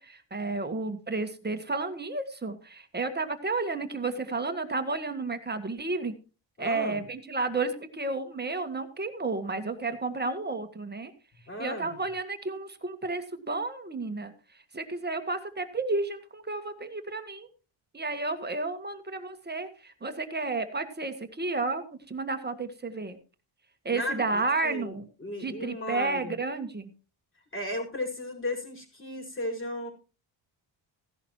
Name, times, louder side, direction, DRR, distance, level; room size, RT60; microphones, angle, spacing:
voice 1, 0.0-6.1 6.6-11.1 11.6-14.3 14.7-17.5 17.9-23.2 23.8-25.0 25.4-26.9, right 3 dB, 20° right, 8 dB, 1.6 m, -32 dB
voice 2, 6.6-7.0 11.5-12.0 23.9-26.3 27.5-29.9, left 1 dB, 25° left, 1 dB, 5.1 m, -35 dB
16.0 x 11.0 x 3.0 m, 0.33 s
cardioid pair, 110°, 47 cm